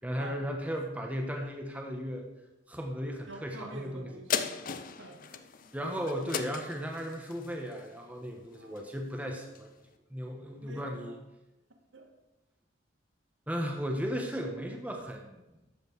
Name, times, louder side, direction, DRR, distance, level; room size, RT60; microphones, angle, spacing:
voice 1, 0.0-2.2 2.7-4.1 5.7-9.7 10.1-11.1 13.5-15.4, equal, 10° right, 2 dB, 1.1 m, -36 dB
voice 2, 3.3-4.6 5.0-5.7 8.6-8.8 10.6-11.1 11.9-12.1, right 1 dB, 85° right, 3 dB, 1.6 m, -47 dB
sound 1, 4.3-9.1 9.5-9.6, left 7 dB, 45° left, 0.6 m, -37 dB
12.5 x 7.8 x 4.7 m, 1.0 s
head